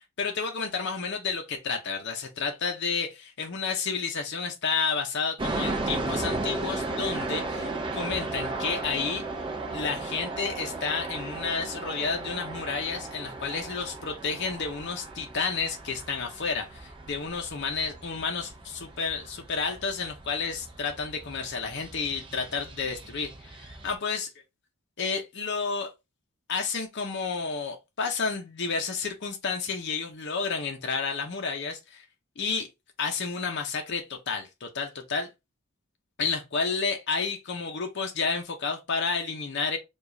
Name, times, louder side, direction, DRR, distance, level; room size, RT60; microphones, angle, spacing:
voice 1, 0.2-9.2 9.7-24.3 25.0-25.9 26.5-32.0 32.4-32.7 33.0-35.3 36.2-39.8, left 5 dB, 55° left, 0.6 m, -31 dB
sound 1, 5.4-23.9, right 2 dB, 25° right, 0.5 m, -36 dB
4.7 x 2.4 x 2.6 m
head